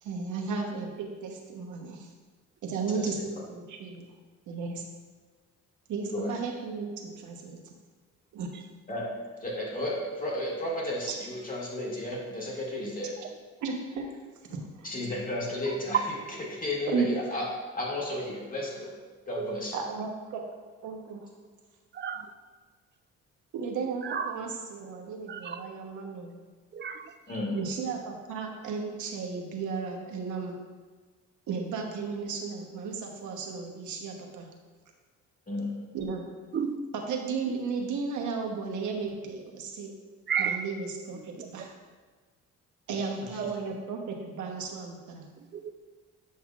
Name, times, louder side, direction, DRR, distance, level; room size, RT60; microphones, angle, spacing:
voice 1, 0.0-2.1 2.6-4.0 4.5-4.8 5.9-7.7 8.3-8.5 11.1-11.2 13.6-14.1 14.5-14.9 16.9-17.1 19.7-20.4 20.8-21.3 23.5-26.4 27.5-30.5 31.5-34.5 35.9-36.2 36.9-39.9 40.4-41.7 42.9-45.3, right 5 dB, 75° right, 1 dB, 1.1 m, -34 dB
voice 2, 9.4-13.1 14.8-17.4 17.7-19.0 19.3-19.8 27.3-27.6 35.5-35.8 42.9-43.1, left 1 dB, 30° left, -3 dB, 2.0 m, -33 dB
voice 3, 21.9-22.3 24.0-24.4 25.3-25.6 26.7-27.1 36.5-36.7 37.5-37.6 40.3-40.6 43.4-43.5 45.5-45.7, right 7 dB, 35° right, 9 dB, 0.5 m, -32 dB
8.5 x 5.7 x 2.5 m, 1.4 s
cardioid pair, 90°, 30 cm